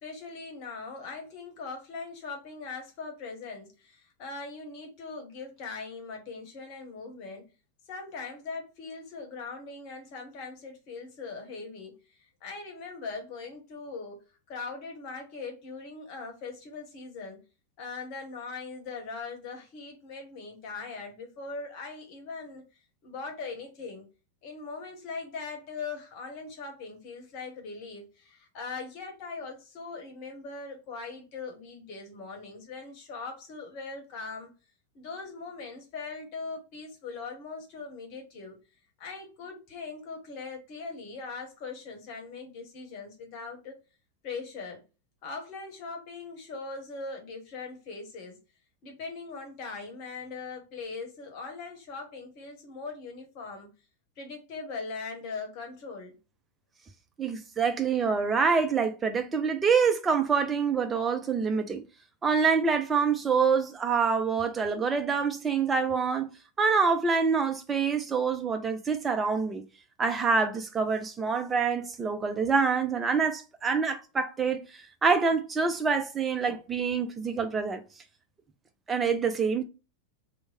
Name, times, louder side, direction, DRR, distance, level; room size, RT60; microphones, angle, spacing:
voice 1, 0.0-7.4 7.9-17.4 17.8-22.6 23.0-24.1 24.4-34.5 34.9-38.6 39.0-43.8 44.2-44.8 45.2-48.4 48.8-53.7 54.2-56.1, left 4 dB, 45° left, 1.1 m, -40 dB
voice 2, 57.2-61.8 62.2-66.3 66.6-69.7 70.0-74.6 75.0-77.8 78.9-79.6, right 5 dB, 15° right, 0.5 m, -26 dB
3.1 x 2.1 x 4.1 m
figure-of-eight pair, 90°, 0 cm